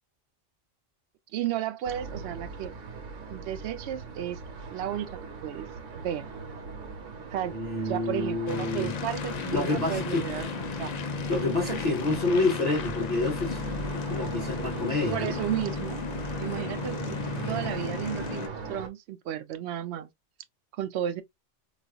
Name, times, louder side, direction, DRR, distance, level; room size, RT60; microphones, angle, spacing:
voice 1, 1.3-2.7 3.3-4.4 4.7-5.1 5.4-5.7 6.0-6.3 7.3-7.6 7.8-10.9 15.1-16.0 16.4-17.2 17.5-20.1 20.7-21.2, right 11 dB, 70° right, 0.8 m, -33 dB
sound 1, 1.8-18.9, right 5 dB, 85° right, 1.1 m, -40 dB
voice 2, 7.5-8.9 9.5-10.5 11.3-13.6 13.9-15.3, left 2 dB, 30° left, 2.4 m, -28 dB
sound 2, 8.5-18.5, left 6 dB, 60° left, 0.4 m, -34 dB
4.0 x 2.4 x 2.3 m
omnidirectional pair, 1.2 m